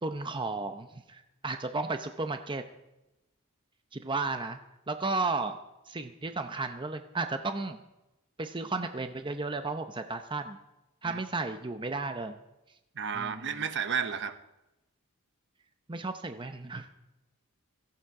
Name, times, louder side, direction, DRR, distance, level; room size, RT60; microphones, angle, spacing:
voice 1, 0.0-2.6 3.9-4.6 4.9-5.6 5.9-7.8 8.4-10.6 11.0-12.4 13.1-13.5 15.9-16.9, right 3 dB, 20° right, 7 dB, 0.7 m, -33 dB
voice 2, 12.9-14.4, right 7 dB, 55° right, 10 dB, 1.0 m, -32 dB
16.5 x 15.0 x 4.8 m, 0.96 s
head